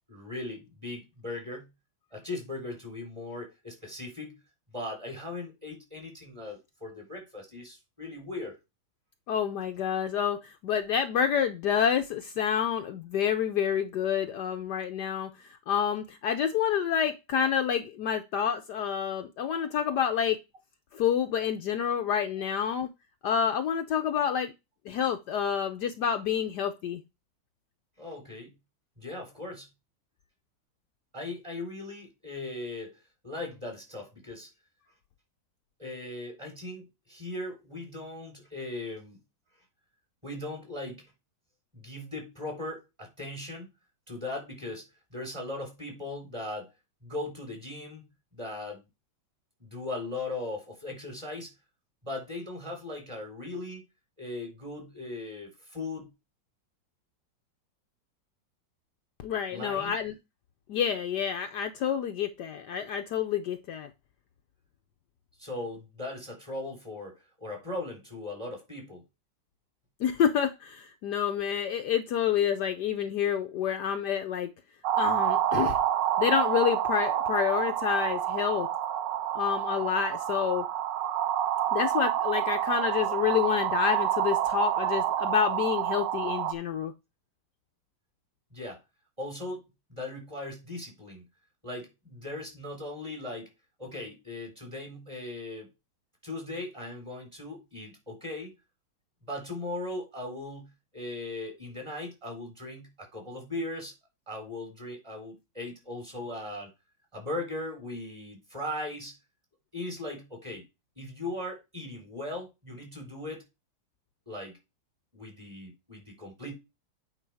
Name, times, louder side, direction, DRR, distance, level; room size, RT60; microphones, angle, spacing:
voice 1, 0.1-1.7 2.1-4.4 4.7-8.6 19.4-19.6 22.4-22.5 28.0-28.5 29.0-29.7 31.1-33.0 33.2-34.5 35.8-39.2 40.2-41.0 41.7-43.7 44.1-46.7 47.0-48.0 48.3-48.8 49.6-51.5 52.0-53.8 54.2-56.1 59.5-59.9 65.4-67.1 67.4-69.0 88.5-88.8 89.2-89.6 89.9-91.3 91.6-93.5 93.8-95.7 96.2-98.5 99.3-103.9 104.3-106.7 107.1-109.1 109.7-110.6 111.0-113.4 114.3-114.6 115.1-116.5, left 2 dB, 15° right, 3.7 m, -38 dB
voice 2, 9.3-20.4 20.9-22.9 23.2-24.5 24.9-27.0 59.2-60.1 60.7-63.9 70.0-74.5 75.0-75.8 76.2-78.7 79.3-80.6 81.7-86.9, left 8 dB, 70° left, 1.2 m, -28 dB
sound 1, 74.8-86.5, right 11 dB, 70° right, 1.4 m, -28 dB
9.0 x 4.8 x 4.8 m
omnidirectional pair, 2.1 m